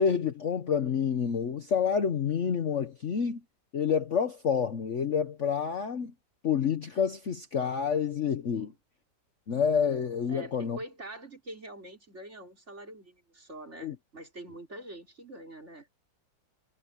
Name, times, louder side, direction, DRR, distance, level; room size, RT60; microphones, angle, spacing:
voice 1, 0.0-3.4 3.7-6.1 6.4-8.7 9.5-10.8 13.8-13.9, left 7 dB, 50° left, 1.1 m, -28 dB
voice 2, 10.3-15.9, right 1 dB, 35° right, 5.2 m, -45 dB
omnidirectional pair, 2.0 m